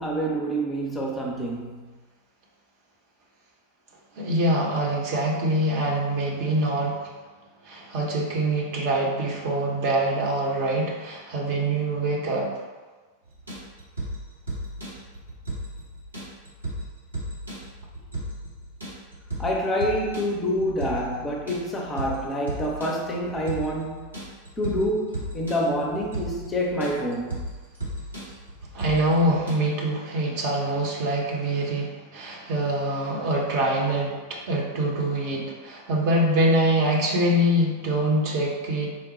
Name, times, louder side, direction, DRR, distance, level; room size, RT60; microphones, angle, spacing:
voice 1, 0.0-1.9 19.4-24.1 24.6-27.4, equal, 15° left, -1 dB, 0.6 m, -27 dB
voice 2, 4.1-7.1 7.6-12.6 28.7-39.0, right 1 dB, 45° right, -2 dB, 0.9 m, -24 dB
sound 1, 13.3-29.5, right 1 dB, 80° right, 1.3 m, -35 dB
4.3 x 2.2 x 4.0 m, 1.3 s
figure-of-eight pair, 90°, 0 cm